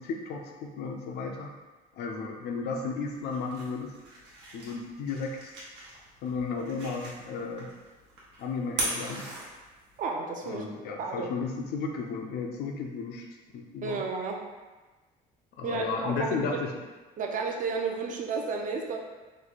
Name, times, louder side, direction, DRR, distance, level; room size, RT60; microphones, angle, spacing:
voice 1, 0.0-1.5 2.0-3.9 4.5-5.5 6.2-7.7 8.4-9.2 10.4-13.2 13.5-14.0 15.6-16.7, left 4 dB, 75° left, 2 dB, 0.5 m, -33 dB
sound 1, 3.1-10.1, right 2 dB, 85° right, 1.0 m, -40 dB
voice 2, 10.0-10.6 11.0-11.3 13.8-14.5 15.6-16.6 17.2-19.0, right 4 dB, 50° right, 2 dB, 0.6 m, -32 dB
3.2 x 2.2 x 4.0 m, 1.2 s
cardioid pair, 110°, 17 cm